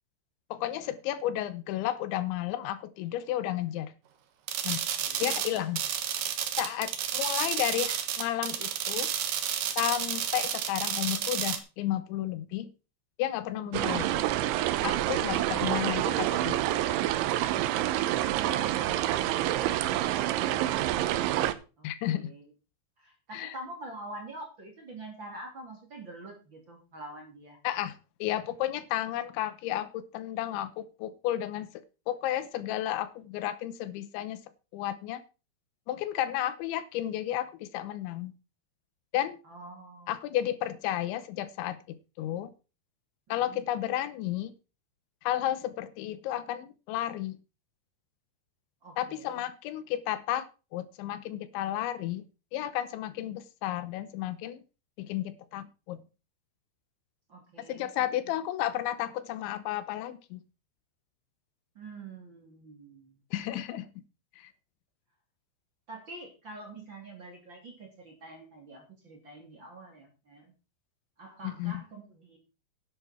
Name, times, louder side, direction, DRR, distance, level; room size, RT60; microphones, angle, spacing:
voice 1, 0.5-3.9 4.6-4.8 5.2-5.8 6.6-9.1 9.8-12.7 13.2-14.1 14.8-16.9 21.8-22.3 23.3-23.5 27.6-34.4 34.7-35.2 35.9-38.3 39.1-39.4 40.1-42.5 43.3-44.5 45.2-47.4 49.0-52.3 52.5-54.6 55.0-56.0 57.7-60.4 63.3-63.9 64.4-64.5 71.6-71.8, left 13 dB, 80° left, 3.2 m, -32 dB
sound 1, 4.5-11.6, right 9 dB, 60° right, 2.5 m, -31 dB
voice 2, 4.8-5.2 13.6-13.8 21.8-22.5 23.0-27.6 39.4-40.2 43.3-43.6 48.8-49.4 53.1-53.3 57.3-58.1 61.7-63.2 65.9-70.5 71.2-72.4, right 2 dB, 30° right, 3.1 m, -46 dB
sound 2, 13.7-21.5, right 14 dB, 80° right, 3.2 m, -27 dB
11.0 x 10.5 x 4.4 m
omnidirectional pair, 5.4 m